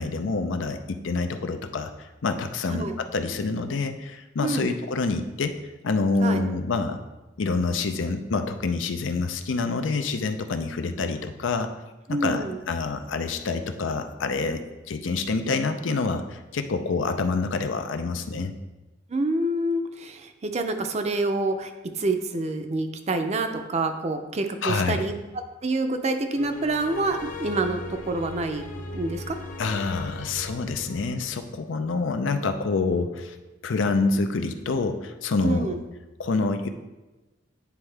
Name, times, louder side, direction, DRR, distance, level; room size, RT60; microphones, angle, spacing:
voice 1, 0.0-2.9 3.1-5.5 5.8-7.0 7.4-11.7 12.1-18.5 24.6-25.0 29.6-33.4 33.6-35.8 36.2-36.7, left 3 dB, 90° left, 8 dB, 0.5 m, -27 dB
voice 2, 4.4-4.7 6.2-6.4 12.1-12.6 19.1-25.1 25.6-28.6 28.9-29.4 35.4-35.8, right 2 dB, 35° right, 7 dB, 0.5 m, -27 dB
sound 1, 26.4-31.5, left 2 dB, 45° left, 0.8 m, -38 dB
9.5 x 3.5 x 3.3 m, 1.1 s
head